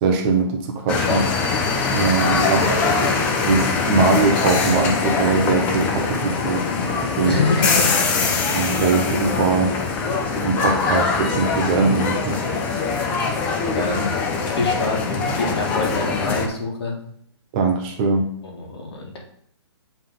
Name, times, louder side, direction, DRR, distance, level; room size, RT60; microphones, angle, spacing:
voice 1, 0.0-1.3 1.9-2.8 3.4-6.7 7.0-7.4 8.5-9.7 10.1-12.4 17.5-18.3, right 4 dB, 20° right, 2 dB, 0.7 m, -21 dB
sound 1, 0.9-16.5, left 4 dB, 10° left, 0.3 m, -22 dB
voice 2, 2.4-3.0 7.2-8.3 13.4-14.1 14.4-17.0 18.4-19.2, left 3 dB, 65° left, 0 dB, 1.7 m, -26 dB
7.4 x 3.4 x 3.8 m, 0.66 s
hypercardioid pair, 160°, 15 cm